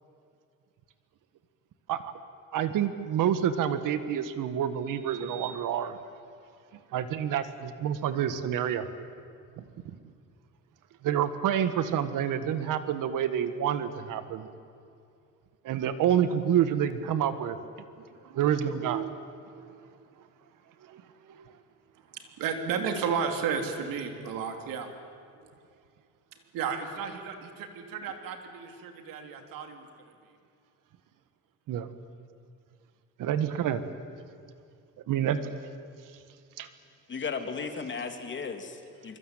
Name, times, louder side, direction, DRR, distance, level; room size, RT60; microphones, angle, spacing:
voice 1, 2.5-6.0 6.9-8.9 11.0-14.5 15.6-17.6 18.3-19.2 19.6-19.7 20.9-21.0 31.7-31.9 33.2-33.8 35.1-35.5 36.6-36.7, right 9 dB, 70° right, 11 dB, 1.7 m, -28 dB
voice 2, 22.1-24.9 26.5-30.1, right 6 dB, 90° right, 5 dB, 3.5 m, -33 dB
voice 3, 37.1-39.2, left 5 dB, 35° left, 6 dB, 2.8 m, -35 dB
25.0 x 24.5 x 9.2 m, 2.4 s
cardioid pair, 130°, 33 cm